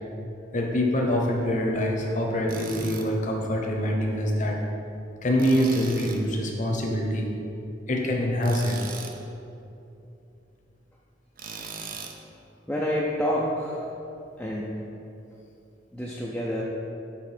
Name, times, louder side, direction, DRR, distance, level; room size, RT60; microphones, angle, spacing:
voice 1, 0.5-4.6 5.2-7.3 7.9-8.8, equal, 45° left, 0 dB, 0.9 m, -25 dB
Tools, 2.5-3.1 5.4-6.2 8.4-9.2 11.4-12.2, right 5 dB, 50° right, 0.5 m, -38 dB
voice 2, 12.7-13.9 14.4-14.8 15.9-16.6, equal, 5° left, -5 dB, 0.5 m, -28 dB
7.3 x 4.1 x 4.4 m, 2.8 s
head